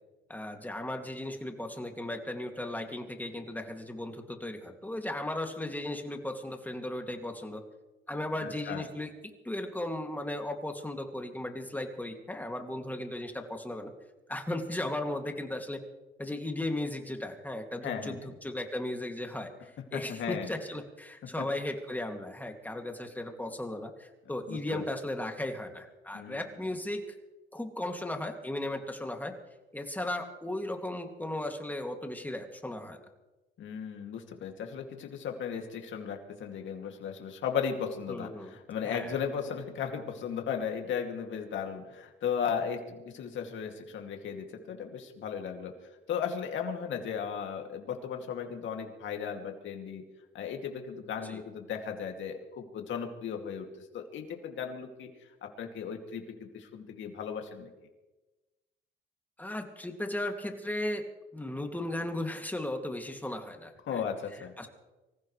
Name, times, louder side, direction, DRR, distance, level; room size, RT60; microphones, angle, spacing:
voice 1, 0.3-7.6 8.1-13.9 14.3-15.8 16.2-27.0 27.5-29.3 29.7-33.0 38.1-38.5 38.8-39.2 51.2-51.4 59.4-61.0 61.3-64.0 64.6-64.7, left 1 dB, 10° left, 3 dB, 2.5 m, -36 dB
voice 2, 8.4-8.8 17.8-18.3 19.9-20.5 24.5-24.8 26.1-26.4 33.6-45.7 46.1-50.0 50.3-53.7 53.9-55.1 55.4-57.7 63.9-64.5, left 7 dB, 75° left, 3 dB, 2.6 m, -36 dB
25.5 x 15.5 x 3.3 m, 1.1 s
cardioid pair, 90°, 20 cm